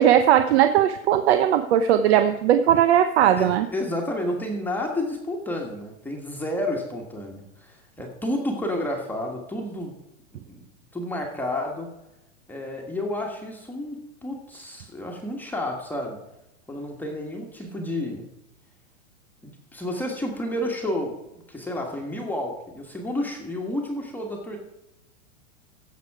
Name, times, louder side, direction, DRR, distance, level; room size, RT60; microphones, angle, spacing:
voice 1, 0.0-3.7, right 10 dB, 50° right, 9 dB, 0.8 m, -18 dB
voice 2, 3.4-9.9 10.5-10.6 10.9-11.9 12.5-16.2 16.7-18.3 19.4-21.1 21.5-24.6, left 1 dB, 5° left, 0 dB, 1.5 m, -30 dB
15.5 x 6.8 x 4.8 m, 0.93 s
hypercardioid pair, 150°, 41 cm